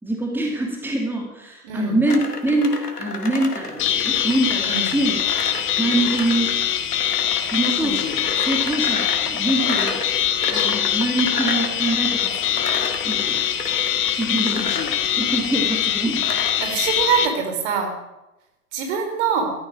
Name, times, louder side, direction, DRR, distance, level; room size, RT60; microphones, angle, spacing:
voice 1, 0.0-5.2 5.8-6.6 7.2-10.0 10.5-12.7 13.0-13.4 14.2-14.7 15.1-16.2, right 2 dB, 5° right, 0 dB, 2.6 m, -24 dB
voice 2, 1.6-2.0 4.6-4.9 16.6-17.9 18.7-19.5, right 6 dB, 45° right, 5 dB, 4.0 m, -23 dB
sound 1, 2.1-16.6, left 3 dB, 85° left, 2.1 m, -32 dB
sound 2, 3.8-17.3, left 10 dB, 25° left, 1.3 m, -23 dB
14.0 x 13.5 x 6.3 m, 0.97 s
figure-of-eight pair, 105°, 46 cm